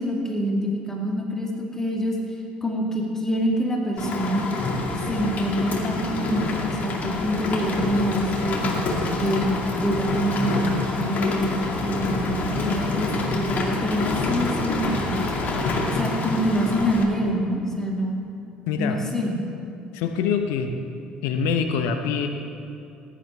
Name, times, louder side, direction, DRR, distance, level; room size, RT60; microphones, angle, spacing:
voice 1, 0.0-2.2 2.6-4.4 5.0-8.7 9.1-9.5 9.8-15.3 15.9-18.2 18.8-19.4, equal, 10° left, -1 dB, 2.4 m, -26 dB
Rain, 4.0-17.0, left 2 dB, 40° left, 2.3 m, -27 dB
voice 2, 18.7-19.0 19.9-20.7 21.2-22.3, left 6 dB, 65° left, 6 dB, 0.9 m, -24 dB
20.0 x 11.0 x 3.5 m, 2.6 s
figure-of-eight pair, 55°, 4 cm